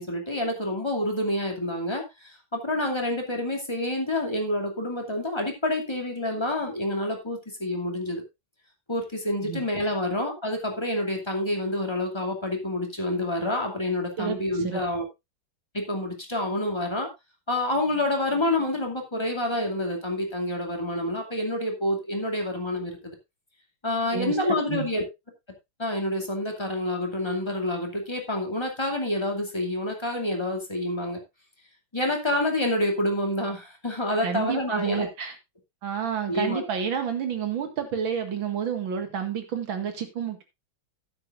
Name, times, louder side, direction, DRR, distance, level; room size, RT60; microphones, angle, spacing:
voice 1, 0.0-8.2 8.9-15.0 15.7-17.1 17.5-23.1 23.8-25.0 25.8-31.2 31.9-35.1 36.3-36.6, left 1 dB, 10° left, 2 dB, 2.4 m, -28 dB
voice 2, 14.2-14.8 24.1-24.4 24.7-24.9 34.2-35.3 35.8-40.4, right 8 dB, 60° right, 6 dB, 2.5 m, -30 dB
12.5 x 10.0 x 2.5 m, 0.22 s
omnidirectional pair, 2.4 m